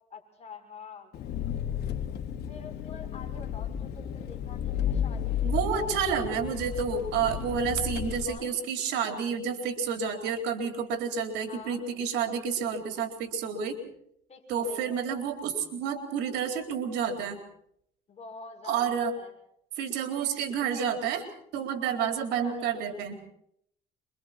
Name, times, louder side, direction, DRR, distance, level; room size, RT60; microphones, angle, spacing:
voice 1, 0.1-1.1 2.5-6.0 8.3-8.5 11.5-11.8 14.3-15.0 18.1-19.3 22.3-23.0, left 5 dB, 40° left, 2 dB, 6.5 m, -47 dB
Engine, 1.1-8.2, left 8 dB, 70° left, 3.2 m, -33 dB
voice 2, 5.4-13.8 14.5-17.4 18.7-19.1 19.8-21.3 21.5-23.3, right 7 dB, 90° right, 5 dB, 4.0 m, -30 dB
27.5 x 24.5 x 4.4 m, 0.71 s
cardioid pair, 110°, 17 cm